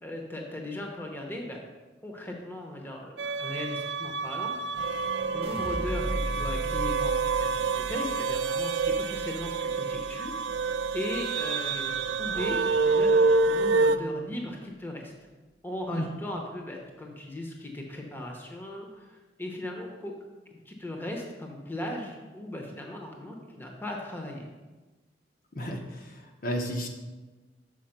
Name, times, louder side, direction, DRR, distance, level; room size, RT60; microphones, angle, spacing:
voice 1, 0.0-1.6 2.0-4.8 5.3-10.3 10.9-15.1 15.6-20.2 20.5-24.5, left 1 dB, 10° left, 1 dB, 0.8 m, -38 dB
sound 1, 3.2-14.0, right 4 dB, 75° right, 0.4 m, -27 dB
sound 2, 5.4-11.6 12.0-12.6, right 1 dB, 35° right, 0.8 m, -37 dB
voice 2, 25.5-26.9, equal, 50° left, 2 dB, 0.9 m, -33 dB
6.4 x 4.7 x 5.9 m, 1.2 s
head